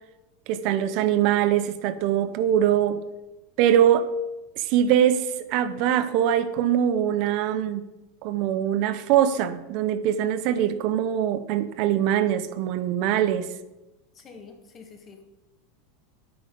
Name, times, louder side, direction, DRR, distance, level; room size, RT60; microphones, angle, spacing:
voice 1, 0.5-3.0 3.6-4.1 4.6-7.8 8.2-13.5, right 10 dB, 45° right, 12 dB, 0.7 m, -23 dB
voice 2, 14.1-15.2, left 5 dB, 25° left, 4 dB, 1.5 m, -47 dB
9.6 x 8.8 x 5.3 m, 1.0 s
supercardioid pair, 160°, 0 cm